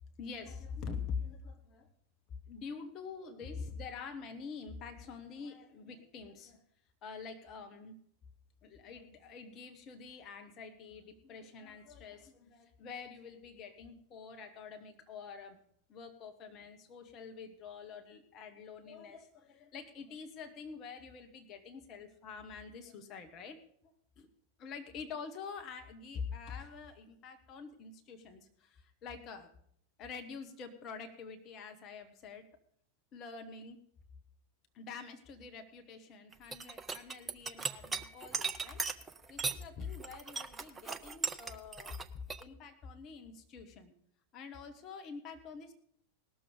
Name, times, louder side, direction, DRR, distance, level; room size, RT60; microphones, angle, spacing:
voice 1, 0.2-1.9 2.5-6.6 7.0-8.0 8.6-15.6 15.9-24.3 24.6-29.5 30.0-32.5 33.1-33.8 34.7-38.8 39.3-43.9 44.3-45.7, left 5 dB, 35° left, 5 dB, 1.3 m, -46 dB
sound 1, 36.3-39.6 39.9-42.4, right 5 dB, 15° right, 0.7 m, -37 dB
19.0 x 6.9 x 5.2 m, 0.65 s
figure-of-eight pair, 90°, 0 cm